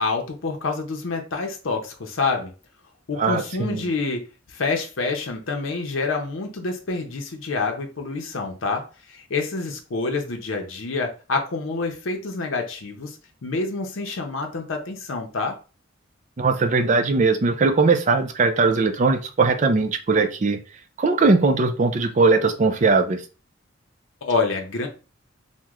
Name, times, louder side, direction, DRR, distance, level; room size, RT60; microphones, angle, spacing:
voice 1, 0.0-2.5 3.1-4.2 4.5-13.2 13.4-15.6 24.2-24.9, left 3 dB, 80° left, 3 dB, 0.6 m, -27 dB
voice 2, 3.1-3.9 16.4-20.6 21.0-23.2, right 3 dB, 40° right, 6 dB, 0.4 m, -20 dB
3.0 x 2.1 x 3.6 m, 0.34 s
head